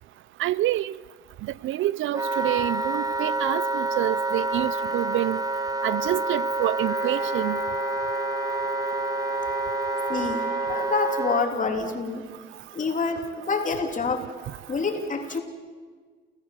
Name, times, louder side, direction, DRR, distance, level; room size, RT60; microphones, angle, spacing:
voice 1, 0.4-1.0 1.4-5.4 5.8-7.6, right 15 dB, 80° right, 0.5 m, -27 dB
Wind instrument woodwind instrument, 2.1-11.5, right 2 dB, 20° right, 0.9 m, -28 dB
sound 1, 6.8-11.0, left 9 dB, 55° left, 3.7 m, -38 dB
voice 2, 10.1-12.3 12.7-14.3 14.7-15.4, left 4 dB, 40° left, 3.4 m, -27 dB
29.5 x 14.5 x 7.4 m
cardioid pair, 90°, 20 cm